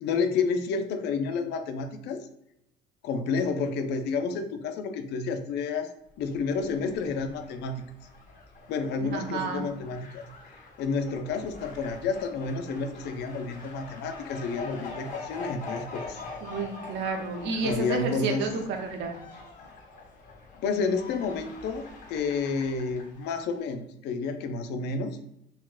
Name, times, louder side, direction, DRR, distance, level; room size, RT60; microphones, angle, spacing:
voice 1, 0.0-2.3 3.0-5.9 6.2-7.8 8.7-10.3 10.5-16.2 17.6-18.5 20.6-25.2, left 4 dB, 65° left, 7 dB, 0.4 m, -30 dB
Fowl, 6.2-23.6, left 3 dB, 45° left, 0.9 m, -44 dB
voice 2, 9.1-9.7 16.4-19.2, right 4 dB, 70° right, 3 dB, 0.7 m, -30 dB
4.1 x 2.1 x 2.3 m, 0.81 s
cardioid pair, 115°, 19 cm